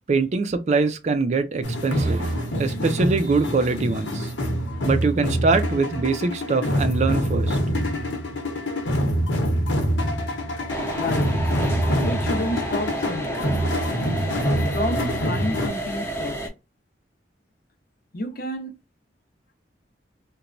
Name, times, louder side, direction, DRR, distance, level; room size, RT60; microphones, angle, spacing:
voice 1, 0.1-4.3 4.8-7.6, right 4 dB, 40° right, 0.3 m, -23 dB
sound 1, 1.6-15.7, equal, 90° left, 0.9 m, -25 dB
sound 2, 10.7-16.5, right 1 dB, 15° left, 0.6 m, -30 dB
voice 2, 11.0-11.3 12.0-13.6 14.7-16.4 18.1-18.7, left 1 dB, 55° left, 0.6 m, -30 dB
2.9 x 2.1 x 2.5 m
head